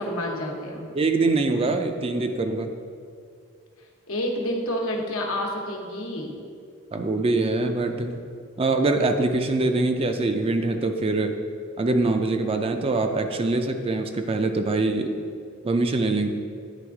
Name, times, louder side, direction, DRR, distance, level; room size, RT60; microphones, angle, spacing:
voice 1, 0.0-0.9 4.1-6.3, left 1 dB, 85° left, 0 dB, 1.1 m, -29 dB
voice 2, 0.9-2.7 6.9-8.2 8.6-11.3 11.8-15.1 15.6-16.3, right 2 dB, 25° right, 6 dB, 0.4 m, -23 dB
9.2 x 3.5 x 4.7 m, 2.3 s
head